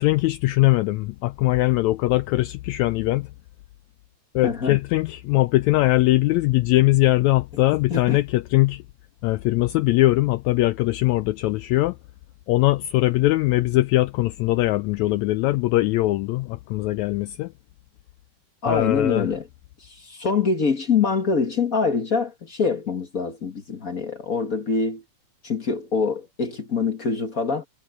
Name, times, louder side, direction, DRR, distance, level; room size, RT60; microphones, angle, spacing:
voice 1, 0.0-3.3 4.3-8.8 9.2-11.9 12.5-17.5 18.7-19.3, left 18 dB, 80° left, 1.6 m, -21 dB
voice 2, 4.4-4.8 7.9-8.2 18.6-19.5 19.8-25.0 25.4-27.6, left 5 dB, 40° left, 1.4 m, -24 dB
omnidirectional pair, 3.6 m